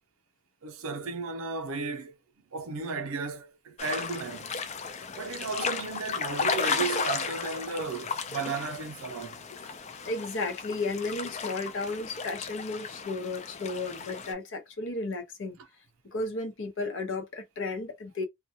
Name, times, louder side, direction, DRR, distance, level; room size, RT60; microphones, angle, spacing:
voice 1, 0.6-2.1 2.5-4.5 5.2-9.4, right 4 dB, 75° right, 0.5 m, -34 dB
sound 1, 3.8-14.3, left 5 dB, 30° left, 0.3 m, -34 dB
voice 2, 10.0-15.6 16.1-18.2, left 3 dB, 60° left, 0.7 m, -33 dB
2.2 x 2.2 x 2.7 m
head